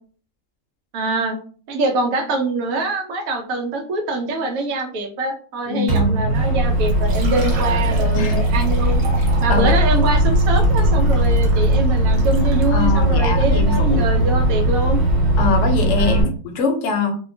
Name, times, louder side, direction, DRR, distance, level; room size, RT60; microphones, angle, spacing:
voice 1, 0.9-1.4 1.7-9.0 9.4-15.0 16.0-16.3, right 2 dB, 85° right, 4 dB, 1.1 m, -24 dB
voice 2, 5.7-6.3 7.7-7.9 8.1-8.5 9.5-10.1 12.7-14.1 15.4-17.2, left 3 dB, 65° left, 4 dB, 0.8 m, -23 dB
Microwave oven, 5.9-16.2, right 1 dB, 35° right, 1.1 m, -18 dB
Liquid, 6.9-12.8 13.5-13.6 14.0-14.1 15.8-15.9 16.0-16.1, right 3 dB, 60° right, 0.9 m, -35 dB
2.8 x 2.1 x 2.5 m, 0.43 s
omnidirectional pair, 1.4 m